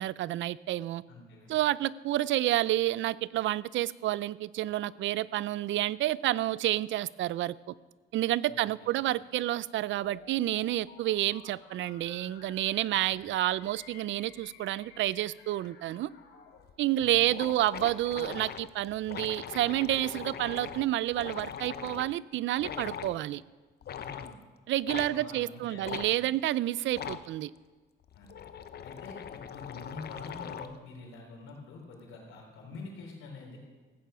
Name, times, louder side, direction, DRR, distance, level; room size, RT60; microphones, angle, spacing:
voice 1, 0.0-1.0 1.5-7.6 8.1-16.1 16.8-23.4 24.7-27.5, right 14 dB, 70° right, 0.4 m, -29 dB
voice 2, 1.1-1.5 8.5-9.0 12.9-13.2 17.0-17.3 24.0-24.4 24.9-26.3 28.1-28.3 28.8-33.6, left 3 dB, 90° left, 3.8 m, -46 dB
sound 1, 9.9-16.7, left 6 dB, 70° left, 1.8 m, -55 dB
sound 2, 16.6-16.7 17.0-17.1 17.3-22.1 22.6-23.2 23.8-24.3 24.9-25.1 25.8-26.1 26.9-27.3 28.0-30.8, left 8 dB, 55° left, 0.7 m, -41 dB
15.5 x 9.1 x 5.7 m
cardioid pair, 90°, 20 cm